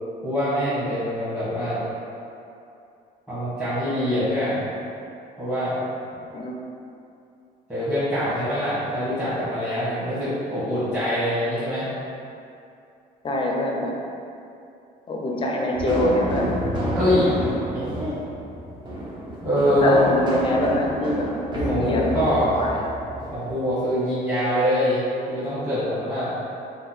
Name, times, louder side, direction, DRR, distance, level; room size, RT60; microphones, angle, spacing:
voice 1, 0.2-1.8 3.3-4.7 5.4-5.8 7.7-11.9 16.9-17.3 17.7-18.1 19.4-19.9 21.6-22.6 23.3-26.3, equal, 5° right, -16 dB, 1.1 m, -24 dB
voice 2, 13.2-13.9 15.1-16.5 19.8-21.3 21.5-22.8, left 1 dB, 30° left, -1 dB, 0.5 m, -24 dB
sound 1, 15.8-23.6, equal, 25° right, 0.7 m, -30 dB
2.8 x 2.2 x 4.0 m, 2.6 s
cardioid pair, 110°, 17 cm